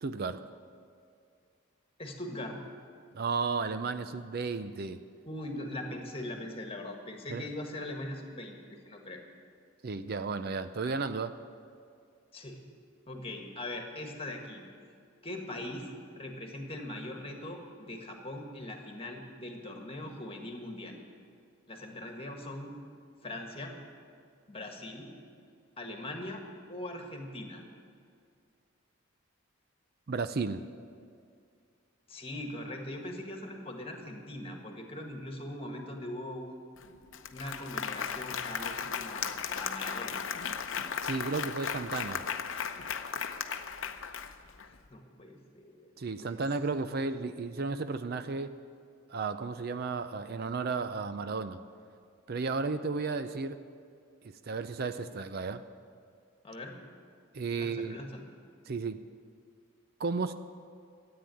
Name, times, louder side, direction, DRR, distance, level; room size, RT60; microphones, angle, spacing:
voice 1, 0.0-0.4 3.1-5.0 7.3-7.5 9.8-11.3 30.1-30.6 41.0-42.2 46.0-48.6 49.1-51.6 52.3-53.6 54.5-55.6 57.3-58.0 58.7-59.0 60.0-60.3, right 4 dB, 50° right, 11 dB, 0.5 m, -33 dB
voice 2, 2.0-2.6 5.3-9.2 12.3-12.6 13.0-14.6 15.2-15.9 16.1-21.0 21.7-22.7 23.2-23.7 24.5-25.1 25.8-26.4 26.7-27.6 32.1-36.7 37.3-40.2 44.6-46.4 56.4-56.7 57.6-58.2, left 1 dB, 30° left, 2 dB, 1.7 m, -41 dB
Applause, 36.8-36.9 37.1-44.7, left 7 dB, 70° left, 0.7 m, -36 dB
13.5 x 8.8 x 9.2 m, 2.3 s
head